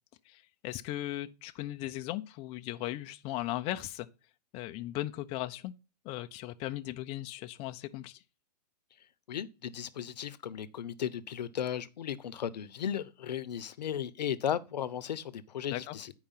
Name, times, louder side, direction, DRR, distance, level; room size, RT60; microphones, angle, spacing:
voice 1, 0.3-4.1 4.5-5.7 6.0-8.2 15.7-16.0, left 15 dB, 25° left, 0.5 m, -37 dB
voice 2, 9.3-16.1, left 9 dB, 80° left, 0.8 m, -35 dB
10.0 x 4.8 x 5.6 m
hypercardioid pair, 130°, 21 cm